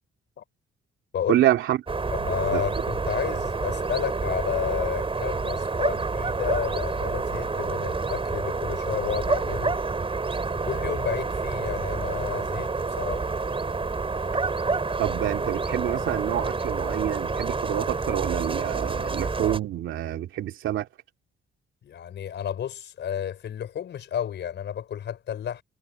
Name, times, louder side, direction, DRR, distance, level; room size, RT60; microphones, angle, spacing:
voice 1, 1.3-1.8 2.5-2.6 15.0-20.9, right 12 dB, 80° right, 2.8 m, -27 dB
sound 1, 1.9-19.6, right 4 dB, 25° right, 5.2 m, -28 dB
voice 2, 2.2-9.8 10.7-12.7 13.0-13.3 21.8-25.6, left 9 dB, 65° left, 4.7 m, -31 dB
cardioid pair, 90°, 20 cm